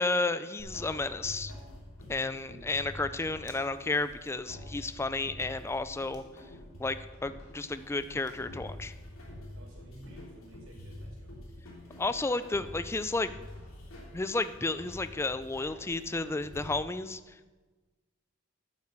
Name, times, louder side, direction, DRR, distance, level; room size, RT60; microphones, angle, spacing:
voice 1, 0.0-1.5 2.1-6.2 6.8-8.9 12.0-13.3 14.1-17.5, left 3 dB, 10° left, 12 dB, 0.3 m, -32 dB
sound 1, 0.6-16.6, left 1 dB, 75° left, 3.1 m, -47 dB
voice 2, 2.0-2.7 5.1-5.4 9.5-11.7 13.3-14.3, right 1 dB, 90° right, -3 dB, 4.4 m, -55 dB
sound 2, 3.4-3.8 6.1-6.4 7.9-8.0 8.2-8.5, right 3 dB, 20° right, 1.7 m, -57 dB
9.4 x 8.3 x 6.6 m, 1.3 s
head